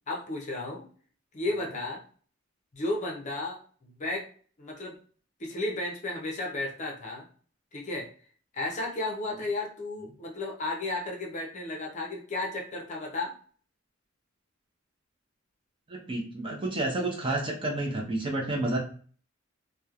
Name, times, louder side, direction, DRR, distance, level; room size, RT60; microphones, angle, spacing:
voice 1, 0.1-0.8 1.3-2.0 2.7-4.3 4.6-5.0 5.4-7.3 7.7-8.1 8.5-13.3, left 2 dB, 35° left, -1 dB, 0.6 m, -33 dB
voice 2, 15.9-18.8, right 2 dB, 25° right, 0 dB, 0.6 m, -30 dB
2.9 x 2.1 x 2.4 m, 0.44 s
head